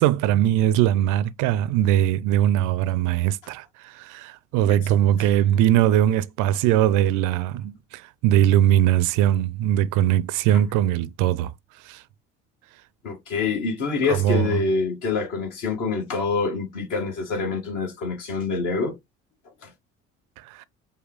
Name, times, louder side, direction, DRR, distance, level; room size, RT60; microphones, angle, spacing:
voice 1, 0.0-11.5 11.8-12.0 14.1-14.7 20.4-20.6, right 12 dB, 55° right, 0.5 m, -21 dB
voice 2, 13.0-18.9 19.6-19.7, left 4 dB, 55° left, 1.6 m, -26 dB
5.4 x 2.2 x 3.6 m
hypercardioid pair, 55°, 36 cm